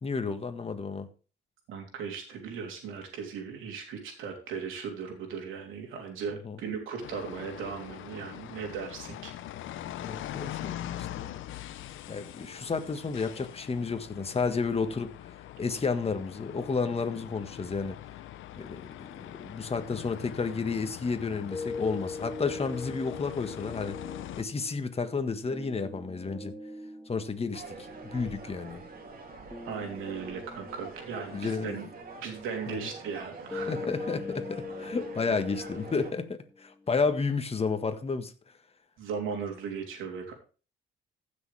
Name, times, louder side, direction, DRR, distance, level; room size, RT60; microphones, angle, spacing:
voice 1, 0.0-1.1 6.4-6.6 10.0-11.4 12.1-15.1 15.6-18.0 18.6-24.0 24.4-26.5 27.1-28.8 31.3-31.8 32.7-32.8 33.7-38.3, left 4 dB, 30° left, 1.6 m, -31 dB
voice 2, 1.7-9.3 10.6-10.9 29.6-31.8 32.2-33.7 39.0-40.3, right 6 dB, 90° right, 3.3 m, -37 dB
sound 1, 7.0-24.4, left 13 dB, 80° left, 0.7 m, -42 dB
sound 2, 21.5-37.5, left 4 dB, 10° left, 1.6 m, -42 dB
sound 3, 27.5-36.1, right 4 dB, 45° right, 3.0 m, -45 dB
15.5 x 6.7 x 3.4 m
cardioid pair, 90°, 20 cm